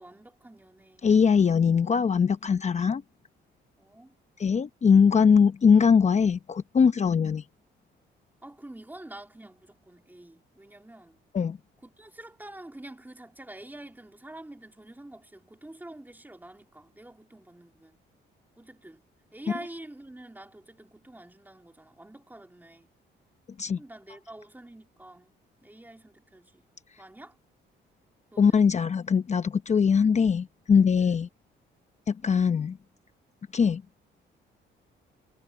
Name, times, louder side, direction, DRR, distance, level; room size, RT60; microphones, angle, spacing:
voice 1, 0.0-1.6 3.8-4.1 8.4-11.2 11.8-18.0 18.6-19.1 19.3-23.0 23.8-26.7 27.0-27.4 28.3-28.6 31.0-31.1, right 1 dB, 10° right, 3.4 m, -47 dB
voice 2, 1.0-3.0 4.4-7.4 11.3-11.6 23.6-23.8 28.4-31.3 32.1-32.8 33.5-33.8, left 6 dB, 35° left, 0.8 m, -21 dB
cardioid pair, 90°, 20 cm